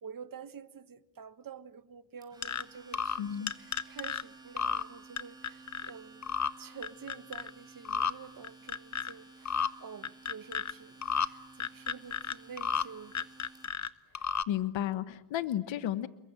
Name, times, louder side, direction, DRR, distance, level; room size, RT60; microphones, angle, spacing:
voice 1, 0.0-13.3, right 6 dB, 45° right, 1.4 m, -49 dB
Domestic sounds home sounds, 2.2-13.8, right 3 dB, 10° right, 5.9 m, -54 dB
sound 1, 2.4-2.6 2.9-3.2 3.5-4.2 4.6-4.8 5.2-5.9 6.2-6.5 6.8-7.5 7.9-8.1 8.4-9.1 9.5-9.7 10.0-10.7 11.0-11.3 11.6-12.8 13.1-13.9 14.1-14.4, left 7 dB, 40° left, 1.1 m, -32 dB
voice 2, 3.2-3.5 14.2-16.1, left 11 dB, 80° left, 1.2 m, -33 dB
29.0 x 22.5 x 8.9 m
cardioid pair, 95°, 46 cm